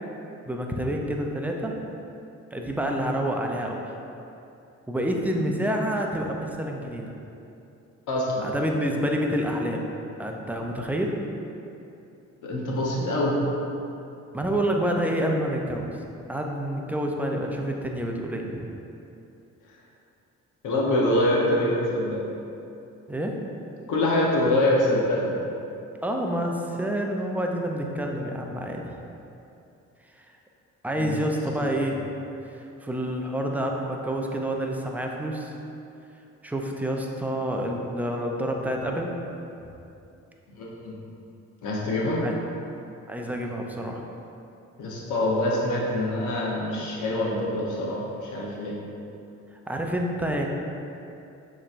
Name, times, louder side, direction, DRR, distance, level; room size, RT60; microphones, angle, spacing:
voice 1, 0.5-1.7 2.5-3.8 4.9-7.2 8.4-9.8 10.2-11.1 14.3-15.9 16.3-18.7 23.1-23.4 26.0-28.8 30.2-30.3 30.8-32.0 32.5-35.5 36.4-39.1 42.2-42.3 43.1-44.0 49.7-50.5, equal, 5° right, 1 dB, 0.4 m, -28 dB
voice 2, 8.1-8.5 12.4-13.4 20.6-22.2 23.9-25.3 30.9-31.3 31.6-31.7 40.5-40.9 41.6-42.2 44.8-48.7, left 1 dB, 80° left, -4 dB, 1.0 m, -25 dB
6.6 x 3.1 x 2.5 m, 2.7 s
cardioid pair, 90°, 30 cm